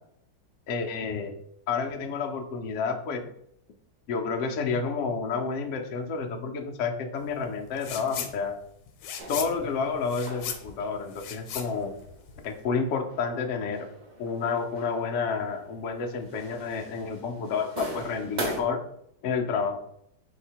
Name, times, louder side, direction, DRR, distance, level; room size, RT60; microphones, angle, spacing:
voice 1, 0.7-1.3 1.7-3.3 4.1-8.6 9.3-11.9 12.4-13.9 14.2-18.8 19.2-19.8, left 5 dB, 70° left, 4 dB, 0.7 m, -30 dB
sound 1, 7.8-8.3 8.7-12.6, left 8 dB, 90° left, 1.3 m, -37 dB
sound 2, 9.2-18.6, right 1 dB, 65° right, 0.4 m, -41 dB
4.1 x 2.9 x 4.4 m, 0.72 s
omnidirectional pair, 1.9 m